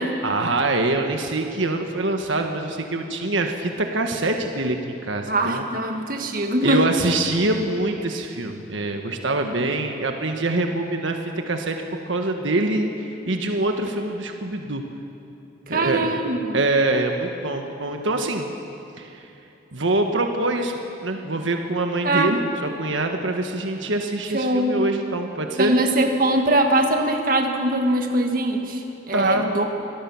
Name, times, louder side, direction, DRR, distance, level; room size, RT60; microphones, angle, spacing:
voice 1, 0.2-5.7 6.6-11.2 11.5-11.8 12.1-14.8 15.7-16.1 16.5-18.5 19.0-19.2 19.7-20.7 21.0-25.8 29.1-29.5, right 2 dB, 80° right, 4 dB, 1.5 m, -24 dB
voice 2, 5.3-6.9 15.7-16.6 22.0-22.4 24.3-24.8 25.6-29.7, right 1 dB, 45° right, 3 dB, 1.8 m, -22 dB
24.5 x 18.0 x 7.2 m, 2.9 s
head